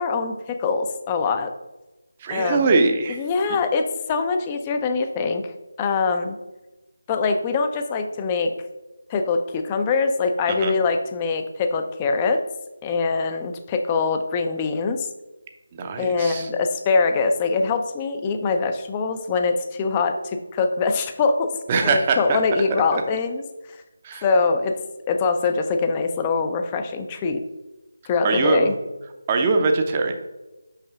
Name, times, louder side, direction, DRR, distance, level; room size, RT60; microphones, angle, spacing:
voice 1, 0.0-1.5 2.3-2.6 3.1-6.4 7.1-8.5 9.1-12.4 12.8-15.1 16.0-21.5 21.8-23.4 24.2-24.7 25.1-27.4 28.1-28.7, left 4 dB, 15° left, 6 dB, 0.5 m, -23 dB
voice 2, 2.2-3.2 10.5-10.7 15.7-16.5 21.7-22.4 22.9-23.0 24.0-24.3 28.2-28.7 29.3-30.1, right 3 dB, 20° right, 5 dB, 0.7 m, -22 dB
6.2 x 5.7 x 3.6 m, 1.1 s
figure-of-eight pair, 155°, 0 cm